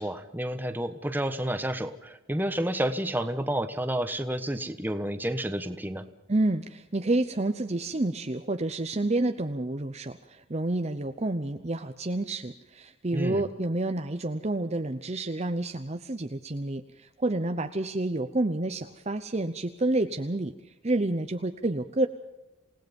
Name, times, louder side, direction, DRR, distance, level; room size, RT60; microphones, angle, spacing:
voice 1, 0.0-6.0 13.1-13.4, right 1 dB, 10° right, 9 dB, 1.2 m, -30 dB
voice 2, 6.3-20.5 20.8-22.1, right 2 dB, 35° right, 8 dB, 0.8 m, -29 dB
28.0 x 17.5 x 5.4 m, 0.96 s
head